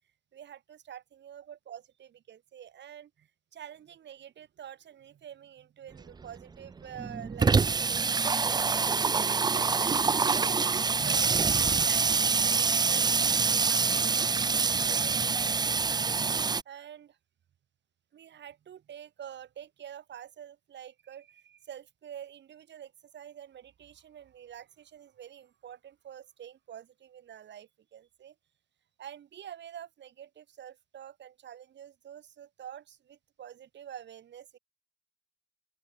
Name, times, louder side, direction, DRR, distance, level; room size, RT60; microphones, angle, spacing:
voice 1, 0.3-13.1 13.7-16.2 16.7-17.2 18.1-28.4 29.0-34.6, right 9 dB, 65° right, 4.1 m, -48 dB
Water tap faucet / Sink (filling or washing), 6.0-6.1 6.4-6.5 6.7-16.6, right 5 dB, 20° right, 0.4 m, -26 dB
open air
cardioid pair, 90°, 20 cm